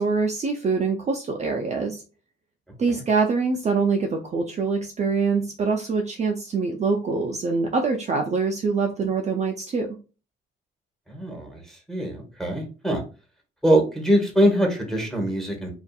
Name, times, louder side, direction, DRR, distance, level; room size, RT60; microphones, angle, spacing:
voice 1, 0.0-2.0 2.8-9.9, right 4 dB, 35° right, 2 dB, 0.4 m, -24 dB
voice 2, 11.1-11.6 11.9-13.0 13.6-15.7, equal, ahead, 2 dB, 0.9 m, -22 dB
2.6 x 2.4 x 2.3 m, 0.34 s
cardioid pair, 90°, 20 cm